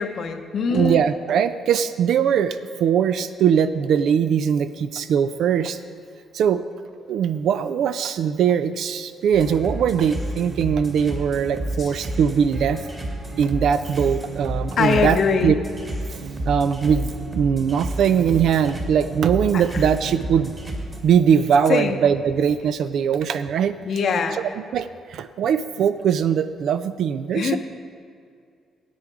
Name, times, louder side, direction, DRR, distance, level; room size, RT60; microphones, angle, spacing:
voice 1, 0.0-1.0 11.8-11.9 14.8-15.6 19.5-19.8 21.7-22.0 23.8-24.4 27.3-27.6, left 5 dB, 60° left, 6 dB, 0.7 m, -22 dB
voice 2, 0.7-5.8 6.3-6.6 7.1-12.8 13.4-15.6 16.5-20.5 21.0-23.7 24.4-27.6, right 8 dB, 70° right, 12 dB, 0.3 m, -21 dB
sound 1, 9.3-21.0, right 1 dB, 30° right, 1.8 m, -31 dB
10.0 x 8.6 x 4.8 m, 2.3 s
cardioid pair, 90°, 0 cm